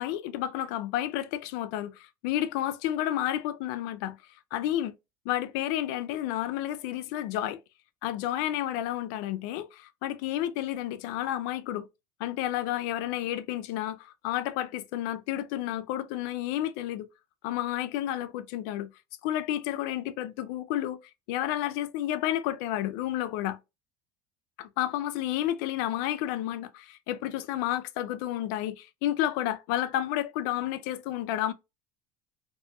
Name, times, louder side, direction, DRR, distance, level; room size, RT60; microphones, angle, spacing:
voice 1, 0.0-4.2 4.5-4.9 5.3-7.6 8.0-11.9 12.2-17.1 17.4-18.9 19.2-21.0 21.3-23.6 24.8-31.5, left 13 dB, 65° left, 0.4 m, -31 dB
2.6 x 2.3 x 2.6 m
cardioid pair, 175°, 11 cm